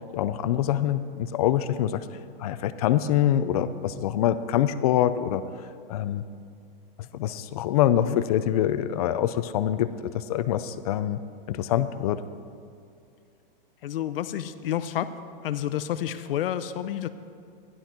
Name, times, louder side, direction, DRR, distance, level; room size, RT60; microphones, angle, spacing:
voice 1, 0.1-2.0 2.4-5.4 5.9-6.2 7.1-11.2 11.5-12.2, left 11 dB, 40° left, 12 dB, 0.4 m, -25 dB
voice 2, 13.8-15.1 15.4-17.1, left 11 dB, 75° left, 12 dB, 0.7 m, -29 dB
14.0 x 11.0 x 4.4 m, 2.4 s
supercardioid pair, 160°, 29 cm